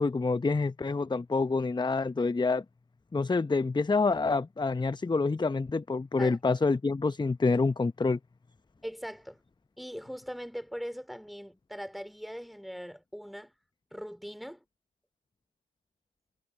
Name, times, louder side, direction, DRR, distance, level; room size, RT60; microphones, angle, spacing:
voice 1, 0.0-2.6 3.1-8.2, left 3 dB, 15° left, 0.8 m, -27 dB
voice 2, 8.8-9.4 9.8-13.5 13.9-14.6, equal, ahead, 3.3 m, -40 dB
hypercardioid pair, 45°, 29 cm